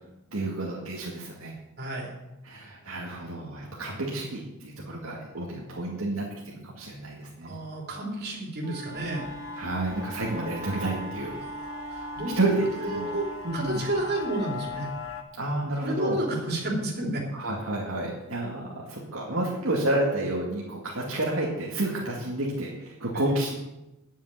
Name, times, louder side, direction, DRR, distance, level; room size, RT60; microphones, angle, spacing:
voice 1, 0.3-1.5 2.4-6.3 6.6-7.6 9.6-11.3 12.4-13.1 13.4-13.8 15.3-16.2 17.3-23.5, right 2 dB, 70° right, -3 dB, 2.3 m, -30 dB
voice 2, 1.8-2.1 7.4-9.3 11.4-11.5 11.9-12.3 12.8-14.9 15.8-17.2 23.1-23.4, right 1 dB, 45° right, -2 dB, 3.6 m, -31 dB
Wind instrument woodwind instrument, 8.6-13.4, right 2 dB, 15° right, 3.2 m, -40 dB
sound 1, 8.9-15.2, left 5 dB, 65° left, 1.4 m, -40 dB
10.0 x 7.2 x 9.2 m, 0.95 s
head